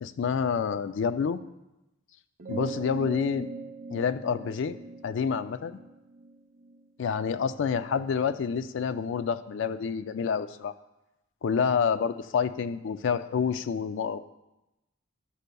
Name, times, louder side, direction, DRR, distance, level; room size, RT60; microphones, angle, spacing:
voice 1, 0.0-1.4 2.5-3.5 3.9-4.8 5.0-5.8 7.0-10.7 11.4-14.2, left 6 dB, 65° left, 12 dB, 0.3 m, -28 dB
sound 1, 2.4-7.2, right 4 dB, 45° right, 0.6 m, -40 dB
11.5 x 6.5 x 2.3 m, 0.97 s
head